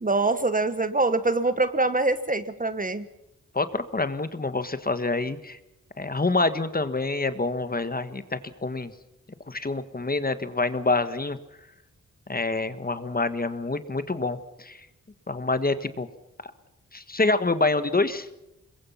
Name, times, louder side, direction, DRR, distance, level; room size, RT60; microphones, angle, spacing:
voice 1, 0.0-3.1, right 2 dB, 25° right, 12 dB, 1.2 m, -24 dB
voice 2, 3.5-5.6 6.0-8.9 9.5-11.4 12.3-14.8 15.3-16.1 16.9-18.3, left 3 dB, 30° left, 11 dB, 1.6 m, -26 dB
26.0 x 22.0 x 5.8 m, 0.89 s
cardioid pair, 75°, 31 cm